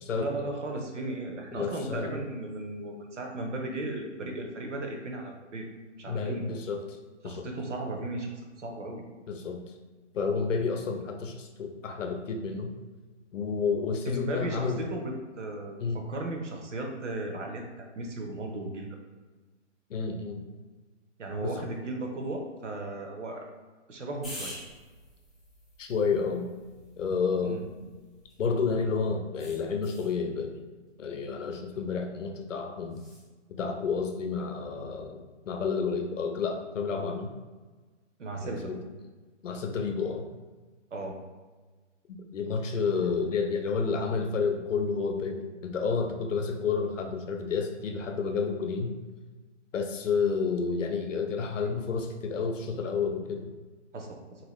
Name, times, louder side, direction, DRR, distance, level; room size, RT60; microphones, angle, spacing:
voice 1, 0.1-5.7 6.0-6.5 7.2-8.3 8.6-9.0 14.1-18.9 21.2-23.5 23.9-24.5 27.4-27.6 38.2-38.7 40.9-41.2 53.9-54.2, right 2 dB, 75° right, 2 dB, 0.8 m, -36 dB
voice 2, 1.5-2.1 6.1-6.8 7.2-7.5 9.3-9.6 10.1-12.7 13.3-14.8 15.8-16.0 19.9-20.4 21.4-21.5 25.8-26.5 27.0-27.6 28.4-30.6 31.0-33.0 33.6-37.3 38.4-38.8 39.4-40.3 42.3-48.9 49.7-53.5, left 5 dB, 80° left, 4 dB, 0.6 m, -30 dB
sound 1, 24.2-28.6 29.4-30.2 32.9-33.3, equal, ahead, 0.3 m, -47 dB
2.8 x 2.6 x 3.0 m, 1.3 s
hypercardioid pair, 180°, 37 cm